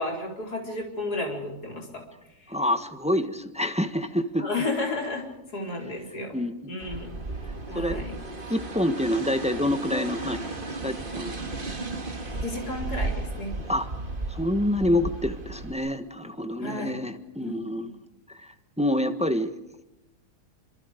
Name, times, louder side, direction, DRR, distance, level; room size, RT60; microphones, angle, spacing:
voice 1, 0.0-2.0 2.4-2.5 4.4-7.1 7.7-8.2 12.4-13.5 16.6-17.0 17.4-17.9, left 2 dB, 65° left, 1 dB, 4.9 m, -33 dB
voice 2, 2.5-4.5 6.3-6.8 7.7-8.0 8.5-11.3 13.6-13.9 14.3-17.9 18.3-19.5, left 1 dB, 5° right, 8 dB, 1.2 m, -27 dB
sound 1, 6.8-15.7, right 2 dB, 30° right, 2.1 m, -34 dB
27.0 x 26.0 x 5.2 m, 0.91 s
omnidirectional pair, 1.8 m